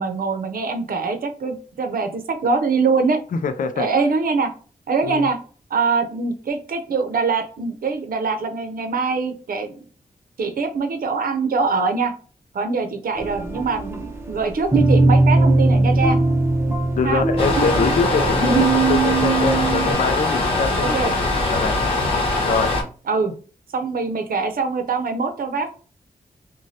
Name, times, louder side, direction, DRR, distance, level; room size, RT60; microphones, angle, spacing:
voice 1, 0.0-3.2 3.8-4.5 4.9-5.4 5.7-9.9 10.4-12.1 12.5-16.2 17.0-17.2 18.4-18.6 20.8-21.1 23.1-23.3 23.7-25.7, right 4 dB, 75° right, 0.7 m, -23 dB
voice 2, 3.4-3.9 5.0-5.3 17.0-21.1 21.4-21.8 22.4-22.7, left 5 dB, 65° left, 0.4 m, -24 dB
sound 1, 13.2-19.9, right 2 dB, 15° right, 0.8 m, -19 dB
sound 2, 17.4-22.8, left 2 dB, 40° left, 1.0 m, -22 dB
6.2 x 2.2 x 2.7 m
wide cardioid pair, 115°, 15 cm